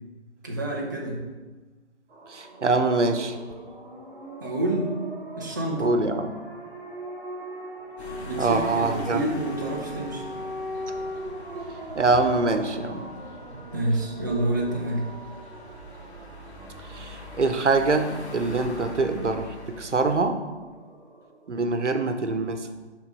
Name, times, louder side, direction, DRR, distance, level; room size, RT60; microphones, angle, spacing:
voice 1, 0.4-1.3 4.4-4.9 5.4-5.9 8.2-10.2 13.7-15.1, right 1 dB, 15° right, -3 dB, 0.5 m, -28 dB
sound 1, 2.1-21.5, right 1 dB, 50° right, 1.3 m, -40 dB
voice 2, 2.3-3.4 5.8-6.3 8.4-9.2 12.0-13.1 13.6-13.7 16.9-20.4 21.5-22.7, right 3 dB, 90° right, 7 dB, 0.9 m, -24 dB
sound 2, 8.0-20.1, left 1 dB, 70° left, 1.6 m, -42 dB
6.0 x 3.8 x 5.3 m, 1.3 s
figure-of-eight pair, 155°, 34 cm